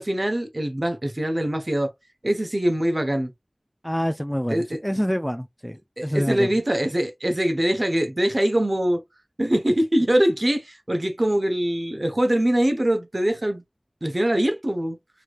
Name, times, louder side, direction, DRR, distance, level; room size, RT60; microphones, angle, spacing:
voice 1, 0.0-1.9 2.2-3.3 4.5-4.8 6.0-9.0 9.4-13.6 14.0-15.0, right 1 dB, 50° right, 0.9 m, -23 dB
voice 2, 3.8-6.5, equal, 5° left, 0.3 m, -26 dB
3.2 x 3.0 x 2.4 m
wide cardioid pair, 40°, 0 cm